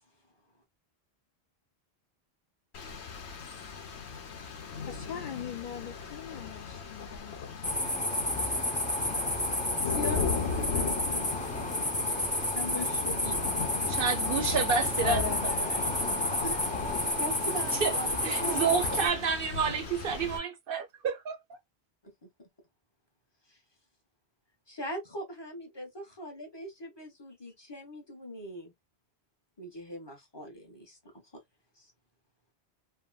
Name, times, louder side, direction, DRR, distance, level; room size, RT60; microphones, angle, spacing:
Rain, 2.7-20.4, left 5 dB, 85° left, 1.1 m, -37 dB
voice 1, 4.8-7.4 15.0-16.2, left 8 dB, 60° left, 0.6 m, -39 dB
sound 1, 7.6-19.1, left 1 dB, 10° left, 0.5 m, -31 dB
voice 2, 9.8-11.5 12.5-13.4 16.4-16.7 17.2-19.0 22.0-22.5 23.5-23.6 24.7-28.7 29.6-31.4 31.8-31.9, left 1 dB, 25° left, 1.0 m, -41 dB
voice 3, 13.9-15.9 17.7-18.0 18.2-21.4, right 6 dB, 65° right, 0.7 m, -30 dB
3.5 x 2.1 x 2.2 m
omnidirectional pair, 1.1 m